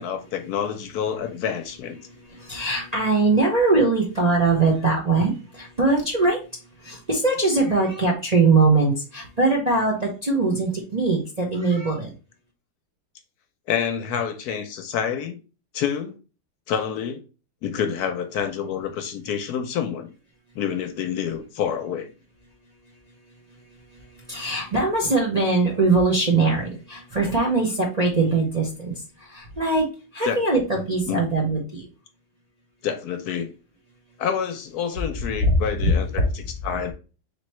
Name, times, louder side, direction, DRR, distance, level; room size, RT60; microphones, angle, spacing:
voice 1, 0.0-2.0 10.5-10.6 13.7-15.4 15.7-16.2 16.7-17.2 17.6-20.1 20.6-22.1 30.2-30.4 31.1-31.3 32.8-33.5 34.2-36.9, left 8 dB, 70° left, 1.0 m, -28 dB
voice 2, 2.5-6.4 6.8-12.1 24.3-28.9 29.3-29.8 30.1-30.6 30.9-31.8 35.4-35.6 35.8-35.9, right 3 dB, 35° right, 0.7 m, -21 dB
3.5 x 3.1 x 4.2 m
omnidirectional pair, 1.8 m